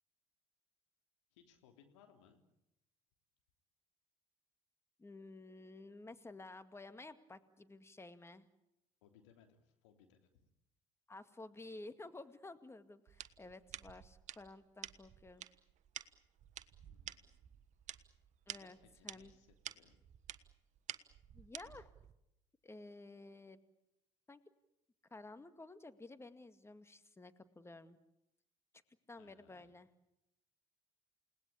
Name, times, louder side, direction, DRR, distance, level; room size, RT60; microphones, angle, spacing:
voice 1, 1.3-2.4 9.0-10.3 16.9-17.5 18.5-20.0 29.2-29.7, left 8 dB, 70° left, 4 dB, 3.5 m, -66 dB
voice 2, 5.0-8.5 11.1-15.4 18.5-18.8 19.0-19.3 21.3-21.9 22.6-23.6 24.3-24.4 25.1-28.0 29.1-29.9, left 2 dB, 15° left, 10 dB, 2.1 m, -53 dB
sound 1, 13.1-22.1, right 11 dB, 50° right, 1.3 m, -51 dB
29.0 x 18.5 x 8.6 m, 0.85 s
figure-of-eight pair, 55°, 16 cm